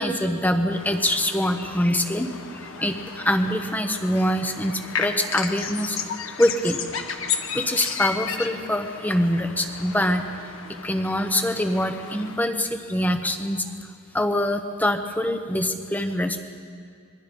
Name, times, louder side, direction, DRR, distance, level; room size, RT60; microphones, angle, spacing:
voice 1, 0.0-6.0 6.4-6.8 7.5-10.2 10.8-16.4, left 1 dB, 10° left, 6 dB, 1.2 m, -24 dB
sound 1, 0.7-12.4, left 6 dB, 85° left, 1.6 m, -34 dB
26.0 x 21.5 x 5.5 m, 2.2 s
head